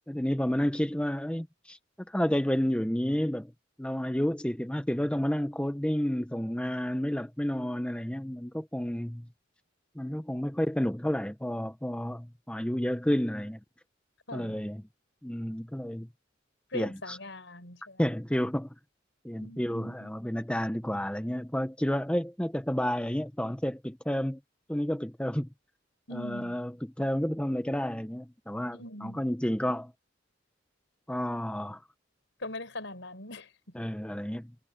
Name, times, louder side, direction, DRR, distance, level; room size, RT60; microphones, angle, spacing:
voice 1, 0.1-1.8 2.1-3.5 3.8-9.3 9.9-13.6 14.3-14.8 15.2-16.1 16.7-17.2 18.0-18.7 19.2-24.4 24.7-25.5 26.1-29.9 31.1-31.8 33.7-34.5, equal, 5° left, 0.9 m, -30 dB
voice 2, 16.7-18.0 19.4-20.1 26.1-26.6 28.7-29.3 32.4-33.5, left 2 dB, 70° left, 5.0 m, -41 dB
head